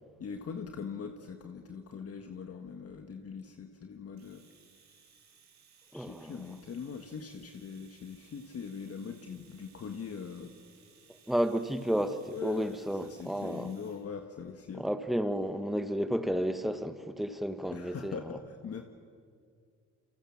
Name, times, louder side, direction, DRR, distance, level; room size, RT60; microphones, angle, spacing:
voice 1, 0.2-4.4 5.9-10.5 12.3-14.8 17.7-18.8, left 6 dB, 50° left, 1.7 m, -42 dB
Domestic sounds home sounds, 4.2-14.1, right 6 dB, 65° right, 5.0 m, -62 dB
voice 2, 5.9-6.5 11.3-13.7 14.8-18.2, equal, ahead, 1.5 m, -32 dB
28.5 x 24.5 x 7.4 m
cardioid pair, 90°, 30 cm